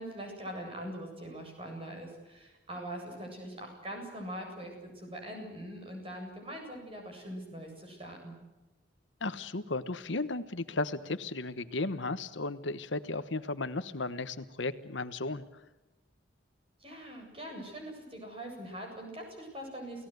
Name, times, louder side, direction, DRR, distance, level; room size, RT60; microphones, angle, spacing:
voice 1, 0.0-8.4 16.8-20.1, right 1 dB, 30° right, 2 dB, 7.9 m, -42 dB
voice 2, 9.2-15.4, left 2 dB, 80° left, 12 dB, 1.2 m, -35 dB
29.5 x 17.5 x 8.1 m, 1.1 s
head